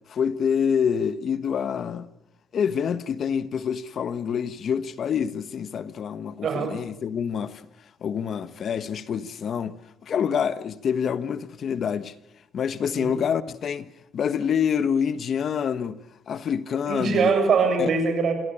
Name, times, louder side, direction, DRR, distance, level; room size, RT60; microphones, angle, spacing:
voice 1, 0.1-2.1 2.5-7.6 8.0-9.7 10.0-12.1 12.5-13.9 14.1-16.0 16.3-17.3 17.8-17.9, left 7 dB, 60° left, 1.3 m, -26 dB
voice 2, 6.4-6.7 13.0-13.2 16.8-18.3, right 5 dB, 60° right, 6.7 m, -22 dB
27.0 x 16.5 x 8.8 m
cardioid pair, 90°, 0 cm